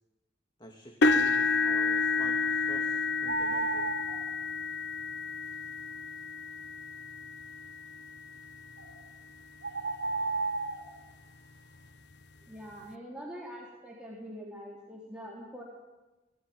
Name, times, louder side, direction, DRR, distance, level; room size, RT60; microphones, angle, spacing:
voice 1, 0.6-3.9, equal, 25° left, 2 dB, 2.4 m, -48 dB
sound 1, 1.0-9.0 9.7-9.9 10.4-10.5 11.8-11.9, left 3 dB, 80° left, 0.9 m, -30 dB
sound 2, 3.2-4.2 8.8-8.9 9.6-10.9, right 3 dB, 80° right, 5.0 m, -32 dB
voice 2, 12.5-15.6, equal, 5° right, -5 dB, 3.7 m, -44 dB
24.0 x 19.0 x 9.5 m, 1.1 s
head